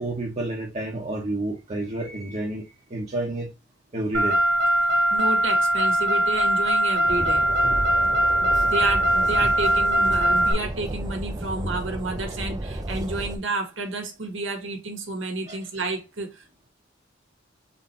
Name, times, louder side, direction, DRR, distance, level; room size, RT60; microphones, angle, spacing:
voice 1, 0.0-3.5 3.9-4.4 10.3-10.5 15.5-15.6, right 2 dB, 35° right, 1.1 m, -30 dB
Car, 4.1-10.5, right 1 dB, 60° right, 1.0 m, -21 dB
voice 2, 5.1-7.5 8.0-8.1 8.4-16.5, right 2 dB, 80° right, 1.5 m, -31 dB
Train, 7.1-13.4, right 1 dB, 20° right, 0.6 m, -32 dB
4.0 x 3.3 x 4.0 m
head